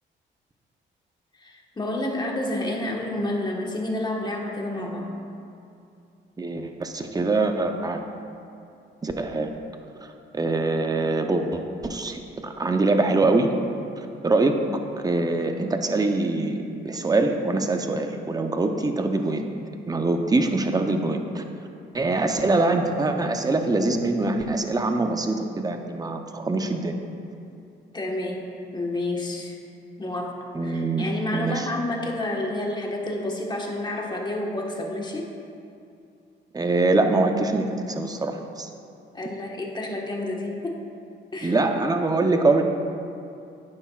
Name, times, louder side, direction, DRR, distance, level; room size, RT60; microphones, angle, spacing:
voice 1, 1.4-5.2 14.7-14.8 22.2-22.3 27.9-29.6 30.0-35.3 39.1-40.8 41.3-41.6, left 1 dB, 20° left, 0 dB, 1.4 m, -30 dB
voice 2, 6.4-8.0 9.0-9.5 10.0-13.5 14.0-14.5 15.0-16.6 16.8-19.4 19.9-21.4 21.9-27.0 30.5-31.1 31.3-31.7 36.5-38.7 41.4-42.6, right 2 dB, 20° right, 5 dB, 0.7 m, -24 dB
11.0 x 9.7 x 2.4 m, 2.6 s
cardioid pair, 90°, 20 cm